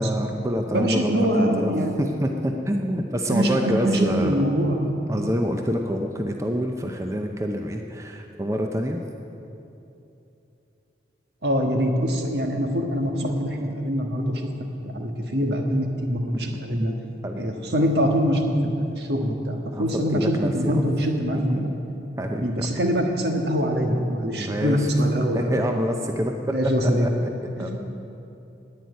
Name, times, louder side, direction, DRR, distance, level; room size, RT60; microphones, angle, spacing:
voice 1, 0.0-4.3 5.1-9.0 16.5-16.6 17.2-17.5 19.7-20.8 21.3-21.4 22.2-22.7 24.4-24.9 25.3-27.8, equal, 15° right, 3 dB, 0.6 m, -27 dB
voice 2, 0.7-2.1 3.3-4.9 11.4-14.4 14.8-16.9 17.4-21.7 22.4-25.4 26.5-27.1 27.6-27.8, equal, 65° right, 3 dB, 1.5 m, -23 dB
10.5 x 9.4 x 9.4 m, 2.9 s
head